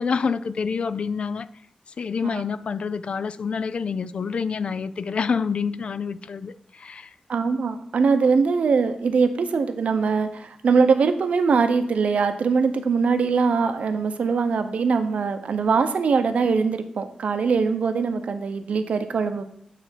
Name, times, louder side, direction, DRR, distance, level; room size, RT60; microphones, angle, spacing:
voice 1, 0.0-1.5 2.0-7.1, left 5 dB, 55° left, 0.4 m, -27 dB
voice 2, 7.3-19.4, right 5 dB, 75° right, 0.7 m, -22 dB
9.1 x 3.3 x 5.8 m
wide cardioid pair, 120°, 2 cm